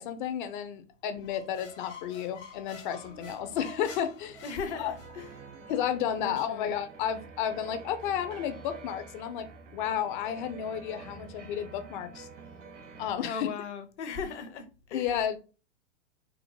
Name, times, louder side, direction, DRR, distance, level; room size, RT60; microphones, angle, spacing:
voice 1, 0.0-4.4 4.8-4.9 5.7-9.5 9.7-12.3 13.0-13.5 14.9-15.4, left 9 dB, 45° left, 0.5 m, -32 dB
sound 1, 1.2-5.3, left 4 dB, 85° left, 1.2 m, -48 dB
sound 2, 3.0-13.1, right 4 dB, 80° right, 0.8 m, -48 dB
voice 2, 4.4-5.3 6.2-6.8 13.2-15.1, left 5 dB, 65° left, 0.8 m, -38 dB
4.4 x 2.0 x 2.9 m
hypercardioid pair, 110°, 37 cm